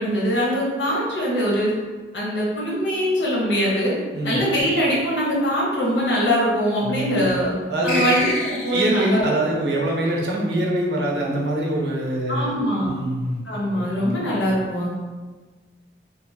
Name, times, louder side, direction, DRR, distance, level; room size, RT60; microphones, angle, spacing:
voice 1, 0.0-1.7 2.1-3.9 4.2-7.5 7.8-9.3 12.3-12.9 13.4-14.9, equal, 85° left, -5 dB, 0.9 m, -22 dB
voice 2, 6.8-7.3 7.7-8.0 8.7-13.4 13.7-14.2, right 1 dB, 75° right, -2 dB, 0.6 m, -24 dB
sound 1, 7.9-9.1, left 1 dB, 40° left, 0.5 m, -26 dB
2.7 x 2.2 x 2.6 m, 1.4 s
head